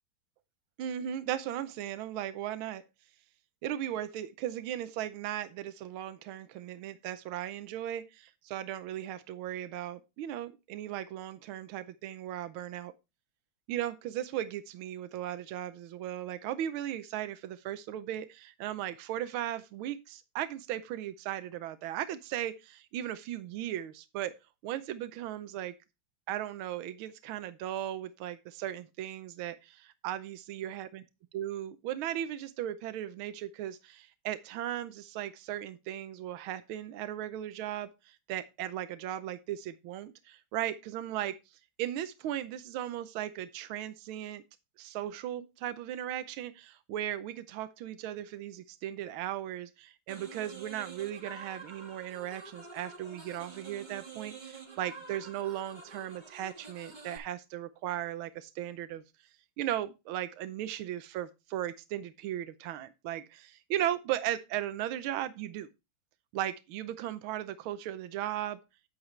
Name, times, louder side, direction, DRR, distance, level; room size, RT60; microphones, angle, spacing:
voice 1, 0.8-2.8 3.6-12.9 13.7-24.3 24.6-25.7 26.3-30.9 31.3-41.4 41.8-44.4 44.8-59.0 59.6-65.7 66.3-68.6, right 12 dB, 85° right, 1.6 m, -37 dB
sound 1, 50.1-57.2, right 4 dB, 25° right, 1.5 m, -48 dB
9.7 x 8.7 x 3.1 m
omnidirectional pair, 2.2 m